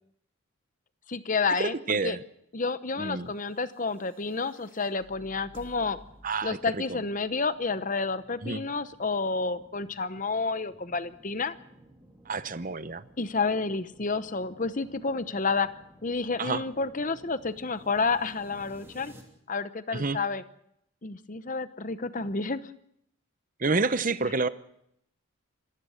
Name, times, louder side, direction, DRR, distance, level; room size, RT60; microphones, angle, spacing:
voice 1, 1.1-2.2 2.5-6.0 6.4-11.5 13.2-15.7 16.0-19.1 19.5-20.4 21.0-22.7 24.3-24.4, left 4 dB, 35° left, 13 dB, 0.9 m, -30 dB
voice 2, 1.6-2.2 3.0-3.3 6.2-6.6 8.4-8.6 12.3-13.0 16.4-16.6 19.9-20.2 23.6-24.5, right 3 dB, 35° right, 14 dB, 0.8 m, -28 dB
sound 1, 3.4-19.2, right 1 dB, 10° right, 2.8 m, -55 dB
27.0 x 15.5 x 6.5 m, 0.75 s
head